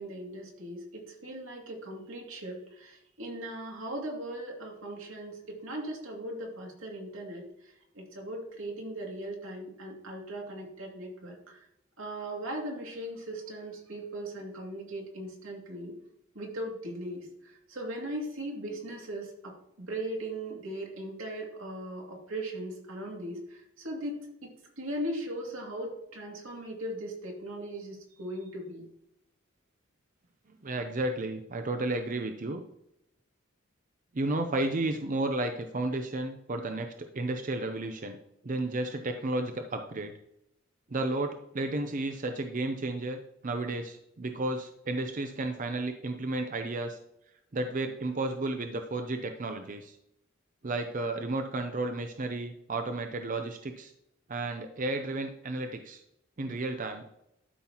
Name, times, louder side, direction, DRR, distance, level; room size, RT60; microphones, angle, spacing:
voice 1, 0.0-7.4 7.9-11.6 12.0-15.9 16.3-24.5 24.8-28.8, right 1 dB, 85° right, 0 dB, 2.5 m, -38 dB
voice 2, 30.6-32.6 34.1-38.2 38.4-40.1 40.9-47.0 47.5-50.0 50.6-53.9 54.3-56.0 56.4-57.0, right 2 dB, 40° right, 6 dB, 0.6 m, -32 dB
12.5 x 5.7 x 2.9 m, 0.79 s
head